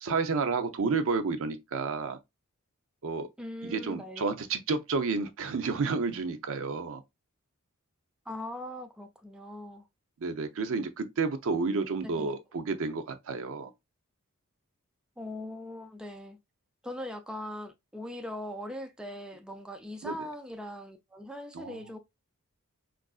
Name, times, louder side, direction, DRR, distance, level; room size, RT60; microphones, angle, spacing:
voice 1, 0.0-2.2 3.0-3.3 3.6-7.0 10.2-13.7 20.0-20.3 21.5-21.8, right 4 dB, 65° right, 0.6 m, -31 dB
voice 2, 3.4-4.3 8.3-9.9 12.0-12.4 15.2-16.4 16.8-22.0, left 1 dB, 5° right, 0.3 m, -40 dB
4.5 x 2.5 x 2.3 m
head